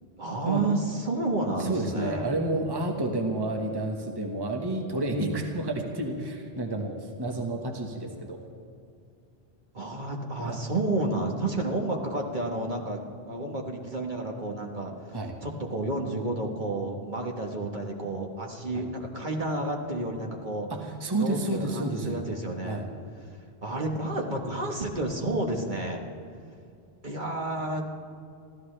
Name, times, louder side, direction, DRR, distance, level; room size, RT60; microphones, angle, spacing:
voice 1, 0.2-2.3 9.7-13.0 13.3-20.7 21.2-22.9 23.6-26.0 27.0-27.9, right 2 dB, 45° right, 1 dB, 1.5 m, -31 dB
voice 2, 1.6-8.4 10.5-10.6 15.1-15.3 18.7-18.9 20.7-22.2 22.6-22.9, right 2 dB, 25° right, 2 dB, 1.3 m, -30 dB
25.0 x 15.5 x 3.3 m, 2.4 s
omnidirectional pair, 1.1 m